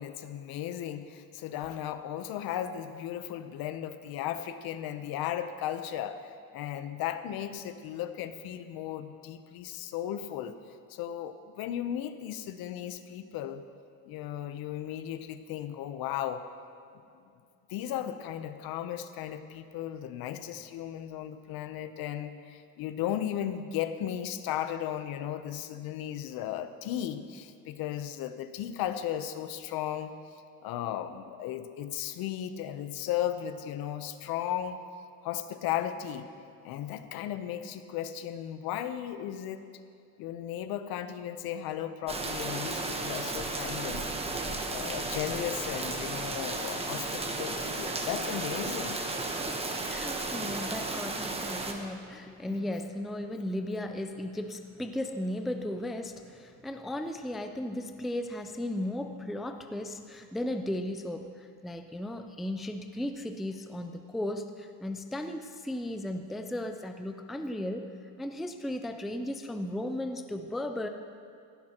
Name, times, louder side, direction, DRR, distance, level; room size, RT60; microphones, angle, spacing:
voice 1, 0.0-10.5 10.9-13.6 14.1-16.4 17.7-30.1 30.6-34.8 35.2-36.3 36.6-39.7 40.2-44.1 44.7-49.0 52.4-52.7, left 11 dB, 70° left, 10 dB, 0.8 m, -35 dB
sound 1, 42.1-51.7, right 2 dB, 15° right, 1.0 m, -34 dB
voice 2, 49.3-67.9 68.2-70.9, left 1 dB, ahead, 6 dB, 0.4 m, -36 dB
17.5 x 15.0 x 3.0 m, 2.4 s
cardioid pair, 140°, 38 cm